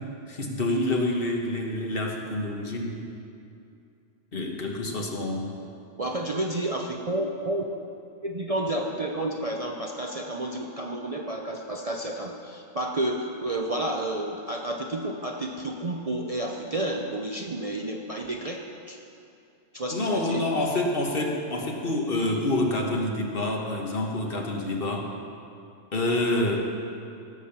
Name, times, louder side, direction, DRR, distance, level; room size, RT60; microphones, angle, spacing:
voice 1, 0.3-3.0 4.3-5.5 19.9-25.1 25.9-26.7, left 1 dB, 50° left, 1 dB, 1.5 m, -27 dB
voice 2, 6.0-7.6 8.2-18.6 18.9-19.0 19.7-20.5, right 1 dB, 35° right, 1 dB, 0.7 m, -30 dB
17.0 x 7.0 x 5.9 m, 2.5 s
omnidirectional pair, 1.2 m